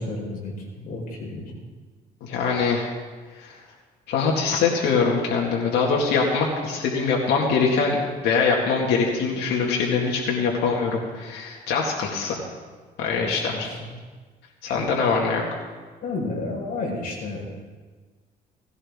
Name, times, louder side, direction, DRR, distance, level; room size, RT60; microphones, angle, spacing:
voice 1, 0.0-1.5 13.1-13.9 14.6-14.9 16.0-17.5, left 2 dB, 60° left, 0 dB, 4.5 m, -32 dB
voice 2, 2.2-2.9 3.4-3.5 4.1-8.0 8.2-12.4 13.0-13.7 14.6-15.4, left 5 dB, 80° left, -2 dB, 2.0 m, -23 dB
17.5 x 16.0 x 3.7 m, 1.4 s
cardioid pair, 110°, 17 cm